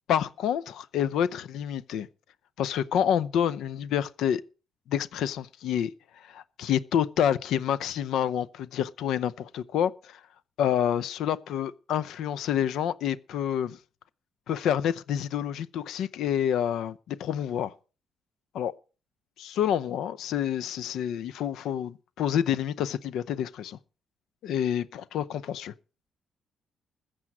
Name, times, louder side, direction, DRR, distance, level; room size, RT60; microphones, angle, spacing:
voice 1, 0.1-2.1 2.6-4.4 4.9-5.9 6.2-10.2 10.6-13.8 14.5-17.7 18.5-18.7 19.4-23.8 24.4-25.7, left 9 dB, 80° left, 0.7 m, -28 dB
14.5 x 7.8 x 6.1 m
cardioid pair, 90°, 0 cm